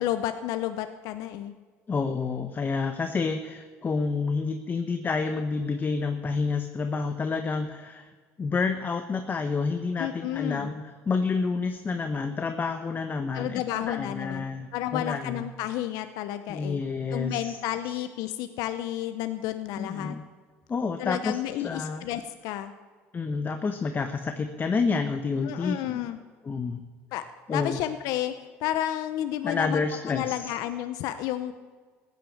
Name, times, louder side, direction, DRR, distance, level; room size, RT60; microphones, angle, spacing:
voice 1, 0.0-1.5 10.0-10.7 13.3-14.4 14.7-16.8 17.1-20.1 21.0-22.7 25.4-26.2 27.1-27.2 27.5-28.3 28.6-29.8 30.1-31.5, left 12 dB, 75° left, 10 dB, 0.7 m, -31 dB
voice 2, 1.9-8.1 8.4-15.5 16.5-17.6 17.9-18.0 19.8-20.2 20.7-21.4 21.6-22.0 23.1-26.1 26.4-26.9 27.5-27.8 29.4-30.5, left 4 dB, 30° left, 7 dB, 1.1 m, -29 dB
15.5 x 9.4 x 7.3 m, 1.5 s
supercardioid pair, 80°, 6 cm